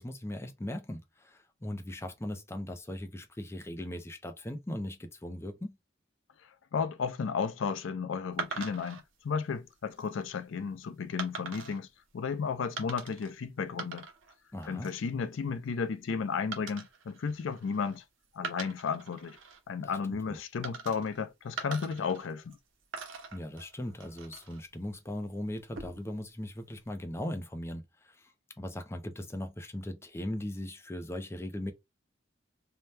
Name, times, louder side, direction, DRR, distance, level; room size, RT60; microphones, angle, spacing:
voice 1, 0.0-5.8 14.5-14.9 19.8-20.4 23.3-28.3 28.6-31.7, left 1 dB, 15° left, 0.5 m, -39 dB
voice 2, 6.7-11.9 12.1-14.1 14.7-18.0 18.3-19.4 19.7-22.6, left 5 dB, 90° left, 0.4 m, -33 dB
sound 1, 8.4-9.0 9.7-10.1 11.2-11.8 12.8-13.3 13.6-14.3 14.6-15.1 16.5-18.0 18.3-19.6 20.6-21.2 21.6-22.6 22.9-24.6 25.6-26.2, right 5 dB, 85° right, 0.8 m, -42 dB
2.7 x 2.1 x 3.3 m
head